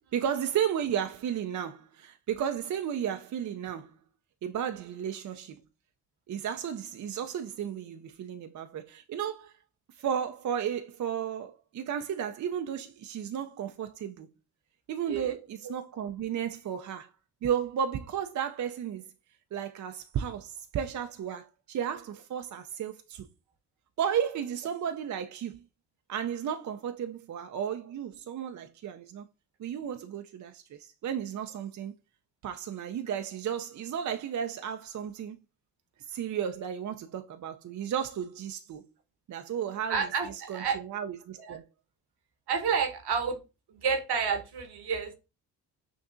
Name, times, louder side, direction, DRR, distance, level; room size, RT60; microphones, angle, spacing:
voice 1, 0.1-3.9 4.4-5.6 6.3-9.5 10.0-14.3 14.9-17.1 17.4-19.0 19.5-23.3 24.0-25.6 26.1-29.3 29.6-31.9 32.4-35.4 36.1-38.8 39.3-41.6, right 8 dB, 45° right, 0.5 m, -33 dB
voice 2, 39.9-40.8 41.5-41.6 42.5-43.4 43.7-45.2, right 6 dB, 60° right, 1.1 m, -30 dB
6.1 x 2.7 x 2.5 m
supercardioid pair, 60°, 44 cm